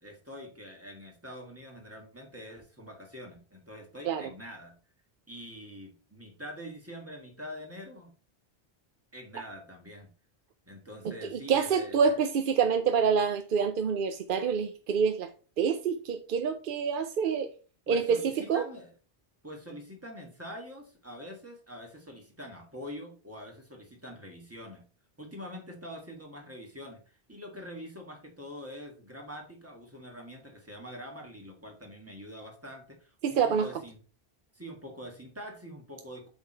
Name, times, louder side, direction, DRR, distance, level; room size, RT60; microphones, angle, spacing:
voice 1, 0.0-4.8 5.3-8.1 9.1-10.1 10.7-12.0 17.9-18.9 19.4-24.8 25.2-34.0 34.5-36.3, equal, 15° right, 1.6 m, -45 dB
voice 2, 11.0-15.3 15.6-17.5 17.9-18.7 33.2-33.7, right 6 dB, 60° right, 0.7 m, -27 dB
8.1 x 3.5 x 4.4 m
omnidirectional pair, 1.0 m